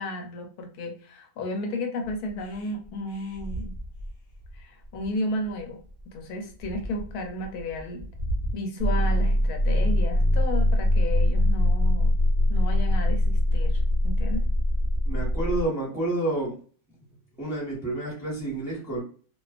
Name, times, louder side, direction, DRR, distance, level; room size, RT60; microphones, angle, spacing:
voice 1, 0.0-3.8 4.5-8.1 8.5-12.1 12.5-14.4, left 1 dB, 80° left, 3 dB, 1.1 m, -33 dB
sound 1, 2.0-8.6, equal, 60° left, 0.6 m, -37 dB
sound 2, 8.8-15.7, equal, 65° right, 0.6 m, -22 dB
voice 2, 15.0-16.6 17.4-19.0, right 2 dB, ahead, -5 dB, 0.8 m, -29 dB
2.4 x 2.2 x 2.3 m, 0.41 s
omnidirectional pair, 1.6 m